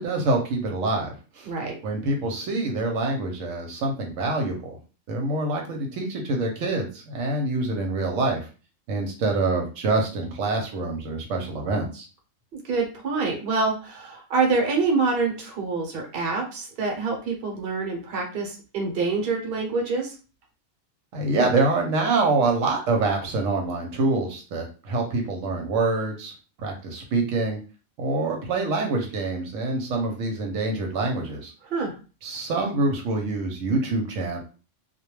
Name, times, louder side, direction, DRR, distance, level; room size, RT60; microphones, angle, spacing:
voice 1, 0.0-1.5 1.8-4.8 5.1-8.5 8.9-12.1 21.1-26.3 26.6-27.6 28.0-31.5 32.2-34.4, right 3 dB, 80° right, 2 dB, 1.0 m, -26 dB
voice 2, 1.4-1.8 12.6-20.1 31.7-31.9, right 4 dB, 50° right, 1 dB, 0.9 m, -26 dB
2.3 x 2.1 x 3.0 m, 0.35 s
omnidirectional pair, 1.3 m